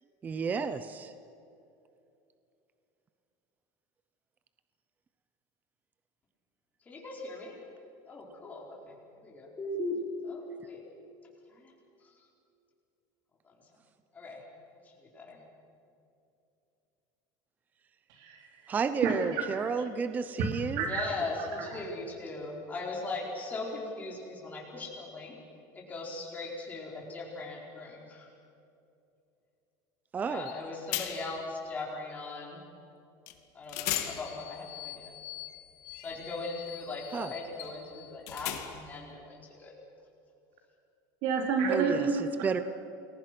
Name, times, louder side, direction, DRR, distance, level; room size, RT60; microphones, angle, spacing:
voice 1, 0.2-1.1 18.7-20.8 30.1-30.5 37.1-37.3 41.7-42.1 42.4-42.6, right 5 dB, 20° right, 11 dB, 0.7 m, -31 dB
voice 2, 6.9-7.5 8.0-10.0 10.2-10.8 11.5-11.7 12.0-12.1 13.4-13.5 14.1-14.4 14.8-15.4 20.9-25.4 25.7-28.3 30.2-32.6 33.5-35.1 36.0-39.7, left 3 dB, 20° left, -2 dB, 4.6 m, -39 dB
voice 3, 18.1-18.5 19.0-19.7 20.5-21.1 21.7-21.8 41.2-42.5, right 5 dB, 60° right, 2 dB, 4.1 m, -30 dB
sound 1, 30.5-30.6 30.9-31.4 33.3-33.4 33.7-39.0, left 12 dB, 85° left, 2.3 m, -39 dB
29.5 x 21.5 x 6.1 m, 2.6 s
cardioid pair, 170°, 9 cm